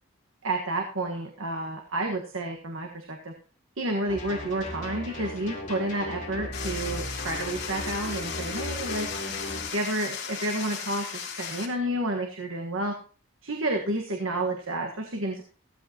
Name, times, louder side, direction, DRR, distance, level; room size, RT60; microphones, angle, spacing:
voice 1, 0.4-3.3 3.8-9.1 9.7-12.9 13.4-15.4, right 1 dB, 90° right, 2 dB, 1.5 m, -30 dB
sound 1, 4.1-9.7, left 1 dB, 40° left, 4.2 m, -36 dB
sound 2, 6.5-11.7, left 6 dB, 55° left, 3.1 m, -36 dB
15.5 x 13.5 x 3.0 m, 0.39 s
head